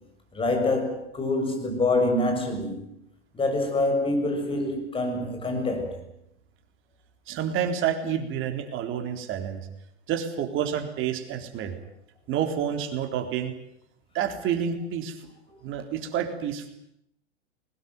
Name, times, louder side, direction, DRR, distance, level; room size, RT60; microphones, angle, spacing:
voice 1, 0.3-2.8 3.3-6.0, left 2 dB, 15° left, 7.0 m, -26 dB
voice 2, 7.3-9.7 10.1-11.7 12.3-13.5 14.1-15.2 15.6-16.7, right 8 dB, 35° right, 3.9 m, -29 dB
22.0 x 20.0 x 9.4 m
hypercardioid pair, 115°, 34 cm